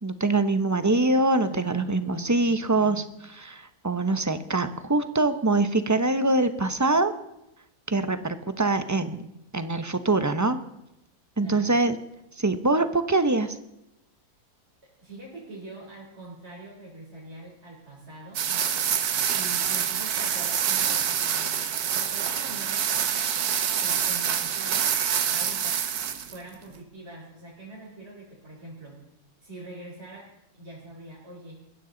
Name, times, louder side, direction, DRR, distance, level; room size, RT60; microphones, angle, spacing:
voice 1, 0.0-3.0 3.4-7.1 7.9-9.3 9.5-10.6 11.4-12.0 12.4-13.6, right 2 dB, 20° right, 10 dB, 0.5 m, -24 dB
voice 2, 1.4-3.1 11.4-11.8 15.0-18.8 19.3-23.3 23.8-29.0 29.4-31.6, right 2 dB, 40° right, -5 dB, 4.1 m, -44 dB
sound 1, 18.3-26.4, right 8 dB, 70° right, 1.5 m, -26 dB
21.5 x 15.5 x 3.9 m, 0.87 s
omnidirectional pair, 1.7 m